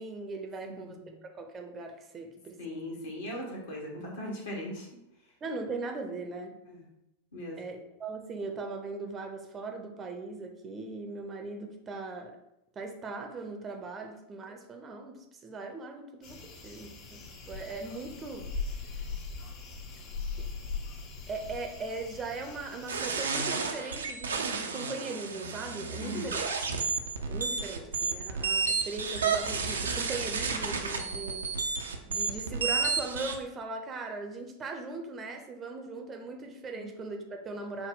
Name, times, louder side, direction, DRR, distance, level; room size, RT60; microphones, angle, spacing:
voice 1, 0.0-2.9 5.4-6.6 7.6-12.4 12.8-17.2 17.5-18.5 20.4-20.5 21.3-26.5 27.3-31.5 32.0-37.9, right 3 dB, 25° right, 4 dB, 0.6 m, -39 dB
voice 2, 0.6-1.2 2.6-4.9 6.7-6.8 7.3-7.7 26.0-26.3 36.7-36.9, equal, 60° left, -1 dB, 1.3 m, -39 dB
sound 1, 16.2-23.2, left 4 dB, 40° left, 0.7 m, -40 dB
sound 2, 22.9-33.4, right 5 dB, 70° right, 0.5 m, -31 dB
5.8 x 2.2 x 3.7 m, 0.87 s
figure-of-eight pair, 90°, 0 cm